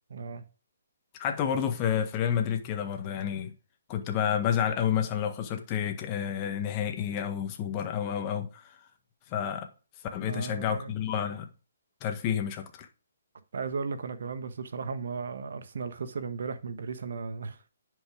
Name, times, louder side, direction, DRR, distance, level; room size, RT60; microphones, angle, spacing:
voice 1, 0.1-0.4 10.2-10.9 13.5-17.6, right 5 dB, 65° right, 1.4 m, -35 dB
voice 2, 1.2-3.5 3.9-8.5 9.3-9.7 10.1-11.5 12.0-12.7, left 8 dB, 30° left, 1.7 m, -29 dB
10.0 x 5.5 x 5.0 m
hypercardioid pair, 140°, 0 cm